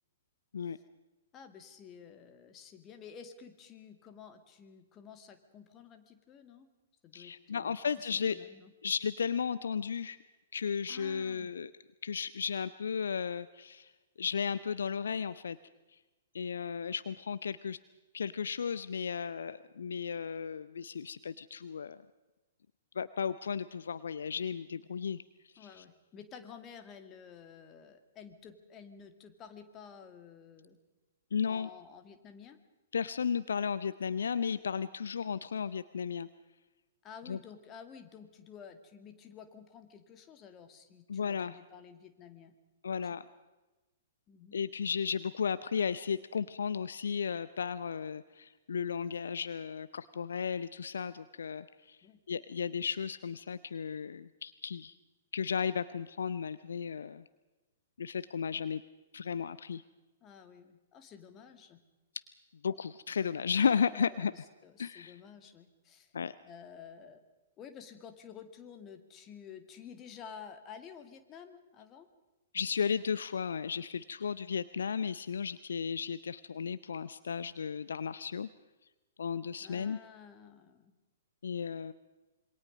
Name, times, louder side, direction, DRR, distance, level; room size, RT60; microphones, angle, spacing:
voice 1, 1.3-6.7 7.0-8.7 10.9-11.5 25.6-30.8 31.5-32.6 37.0-42.6 43.0-43.2 44.3-44.6 52.0-52.2 60.2-61.8 63.6-66.1 66.4-67.2 67.6-72.1 79.6-81.0, left 7 dB, 25° left, 7 dB, 2.3 m, -51 dB
voice 2, 7.1-8.4 8.8-10.2 10.5-11.7 12.0-13.9 14.2-15.6 16.3-17.8 18.1-22.0 22.9-25.2 25.5-25.8 31.3-31.7 32.9-36.3 37.3-37.4 41.1-41.6 42.8-43.3 44.5-52.0 52.3-54.9 55.3-57.2 58.0-58.8 59.1-59.8 62.6-64.3 64.8-65.1 66.1-66.3 72.5-78.5 79.2-80.0 81.4-81.9, left 6 dB, 65° left, 15 dB, 0.7 m, -34 dB
27.0 x 23.5 x 5.3 m, 1.1 s
figure-of-eight pair, 115°, 0 cm